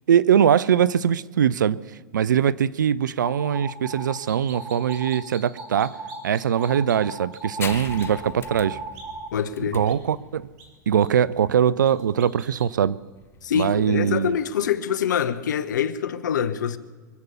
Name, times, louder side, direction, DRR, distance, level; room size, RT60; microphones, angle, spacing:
voice 1, 0.1-1.8 2.1-6.0 6.2-8.8 9.6-10.5 10.9-13.0 13.5-14.3, right 8 dB, 80° right, 0.5 m, -21 dB
sound 1, 3.2-4.2 4.5-5.2 5.6-6.2 6.6-9.3, right 3 dB, 25° right, 2.0 m, -36 dB
sound 2, 4.3-7.0 7.3-7.4 7.6-8.1 8.9-9.0 9.9-10.0 10.6-10.7 11.0-11.1 11.8-12.7, right 5 dB, 60° right, 3.6 m, -45 dB
sound 3, 7.6-14.7, left 7 dB, 25° left, 0.9 m, -41 dB
voice 2, 9.3-9.8 13.4-16.8, left 8 dB, 75° left, 1.0 m, -25 dB
24.0 x 8.2 x 7.0 m
hypercardioid pair, 100°, 10 cm